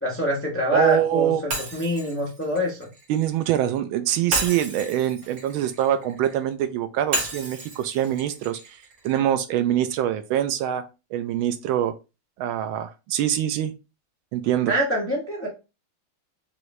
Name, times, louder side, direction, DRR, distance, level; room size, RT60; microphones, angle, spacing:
voice 1, 0.0-2.9 14.7-15.5, equal, 15° left, 0.4 m, -25 dB
voice 2, 0.7-1.4 3.1-8.8 9.0-10.8 11.1-11.9 12.4-13.7 14.3-14.7, right 11 dB, 80° right, 1.3 m, -24 dB
Shatter, 1.5-3.6 4.3-6.4 7.1-9.2, right 2 dB, 60° right, 1.9 m, -32 dB
4.7 x 2.6 x 3.1 m
omnidirectional pair, 2.2 m